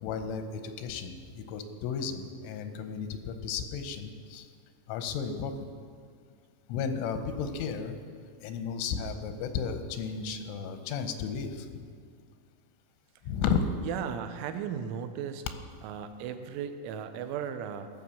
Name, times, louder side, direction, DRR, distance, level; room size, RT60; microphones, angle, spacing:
voice 1, 0.0-4.5 4.9-5.7 6.7-8.0 8.4-11.8 13.2-13.7, left 6 dB, 90° left, 8 dB, 3.3 m, -33 dB
voice 2, 13.8-15.5 15.8-17.9, right 8 dB, 90° right, 9 dB, 3.2 m, -36 dB
16.0 x 6.1 x 7.0 m, 2.1 s
omnidirectional pair, 5.4 m